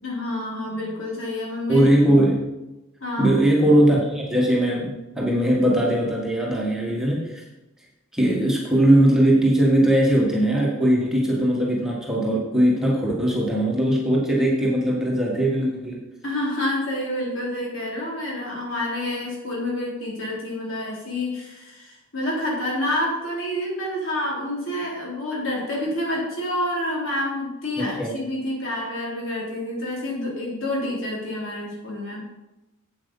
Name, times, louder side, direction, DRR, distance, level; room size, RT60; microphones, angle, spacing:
voice 1, 0.0-1.9 3.0-3.3 16.2-32.2, left 1 dB, 70° left, -4 dB, 3.8 m, -28 dB
voice 2, 1.7-2.4 3.2-7.4 8.1-16.0 27.8-28.1, right 1 dB, ahead, -4 dB, 1.6 m, -20 dB
8.1 x 7.9 x 5.5 m, 0.99 s
head